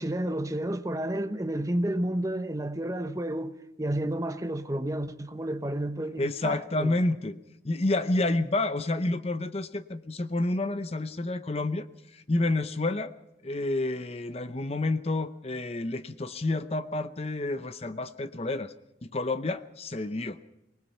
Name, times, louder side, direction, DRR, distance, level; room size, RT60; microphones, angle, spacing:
voice 1, 0.0-6.9, right 1 dB, 20° right, 1.0 m, -31 dB
voice 2, 6.2-7.4 7.6-13.1 13.4-18.7 19.0-20.4, left 2 dB, 35° left, 0.7 m, -29 dB
24.5 x 19.0 x 5.8 m
head